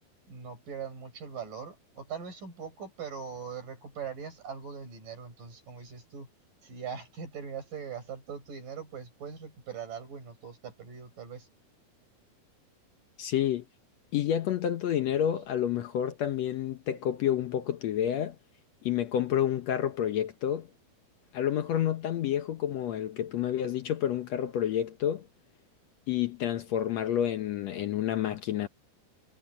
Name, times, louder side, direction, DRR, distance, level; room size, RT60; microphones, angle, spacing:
voice 1, 0.3-6.3 6.6-11.5, right 6 dB, 65° right, 8.6 m, -41 dB
voice 2, 13.2-13.6 14.1-18.4 18.8-20.7 21.3-25.3 26.1-28.7, left 10 dB, 75° left, 1.6 m, -29 dB
omnidirectional pair, 4.2 m